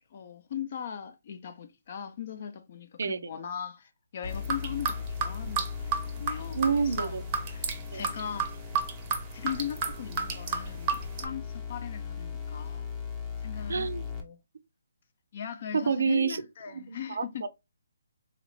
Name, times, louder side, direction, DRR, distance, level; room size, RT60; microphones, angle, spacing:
voice 1, 0.1-6.6 7.0-7.2 7.4-8.5 9.3-12.9 13.4-14.4 15.3-17.5, left 8 dB, 45° left, 0.5 m, -39 dB
voice 2, 3.0-3.3 6.5-7.2 7.9-8.0 13.7-14.0 15.7-16.4 16.7-17.5, right 5 dB, 65° right, 0.5 m, -28 dB
sound 1, 4.2-14.2, left 6 dB, 15° left, 0.8 m, -38 dB
sound 2, 4.3-11.2, right 5 dB, 25° right, 0.7 m, -32 dB
3.9 x 2.5 x 3.1 m
hypercardioid pair, 160°, 0 cm